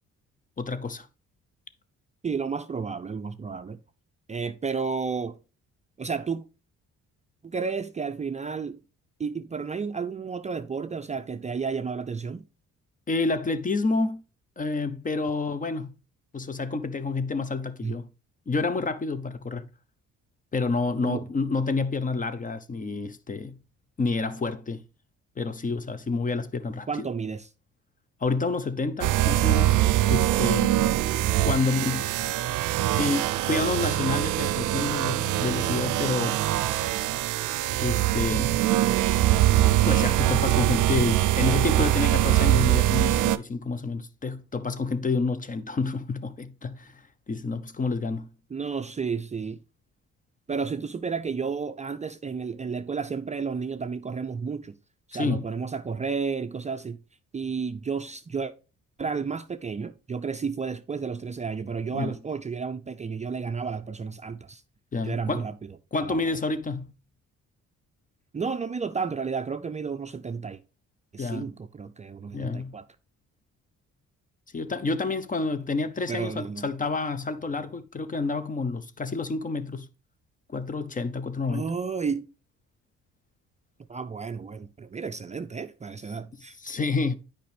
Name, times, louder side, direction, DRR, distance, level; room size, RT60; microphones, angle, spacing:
voice 1, 0.6-1.1 13.1-14.2 14.6-15.9 16.3-18.1 18.5-19.7 20.5-23.6 24.0-24.8 25.4-26.9 28.2-29.8 30.1-30.8 31.5-32.0 32.9-36.4 37.8-38.6 39.8-47.0 47.3-48.3 55.1-55.5 61.9-62.2 64.9-65.5 65.9-66.9 71.2-71.5 72.3-72.7 74.5-79.9 80.5-81.7 86.6-87.1, left 3 dB, 25° left, 0.6 m, -29 dB
voice 2, 2.2-3.8 4.3-5.4 6.0-6.5 7.4-8.8 9.2-12.4 17.8-17.9 21.0-21.3 26.9-27.5 31.4-31.5 31.9-32.0 48.5-49.6 50.5-54.7 55.1-57.0 57.3-58.5 59.0-64.6 65.0-65.8 66.0-66.4 68.3-70.6 71.1-72.8 76.1-76.7 81.5-82.3 83.9-86.6, right 5 dB, 25° right, 0.4 m, -32 dB
sound 1, 29.0-43.4, right 14 dB, 80° right, 0.5 m, -23 dB
9.1 x 5.0 x 3.3 m
cardioid pair, 90°, 30 cm